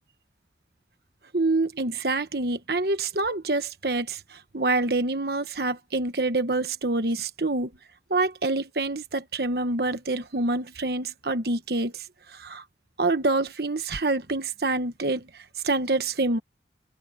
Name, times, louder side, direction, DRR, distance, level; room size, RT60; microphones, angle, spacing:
voice 1, 1.3-7.7 8.1-12.6 13.0-16.4, right 2 dB, 55° right, 1.2 m, -26 dB
head